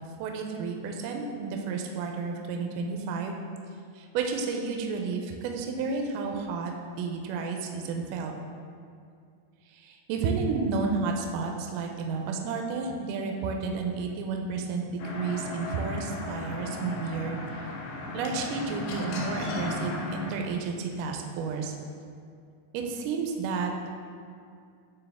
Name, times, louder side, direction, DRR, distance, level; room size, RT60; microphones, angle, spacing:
voice 1, 0.2-3.4 4.0-8.3 9.7-17.4 18.1-21.8 22.7-23.9, right 4 dB, 85° right, 2 dB, 1.9 m, -31 dB
sound 1, 15.0-20.3, left 2 dB, 85° left, 2.8 m, -35 dB
9.1 x 3.5 x 3.4 m, 2.3 s
omnidirectional pair, 4.4 m